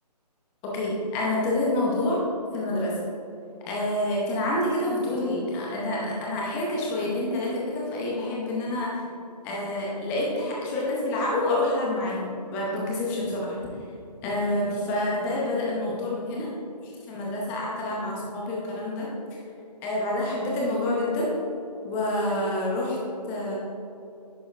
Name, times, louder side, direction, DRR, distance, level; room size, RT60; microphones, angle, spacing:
voice 1, 0.6-2.2 2.5-2.9 3.7-9.0 9.4-13.6 14.2-16.5 16.8-19.1 19.8-21.3 21.8-23.0 23.3-23.5, left 1 dB, 10° left, -4 dB, 0.6 m, -27 dB
11.0 x 5.0 x 2.4 m, 2.7 s
figure-of-eight pair, 155°, 21 cm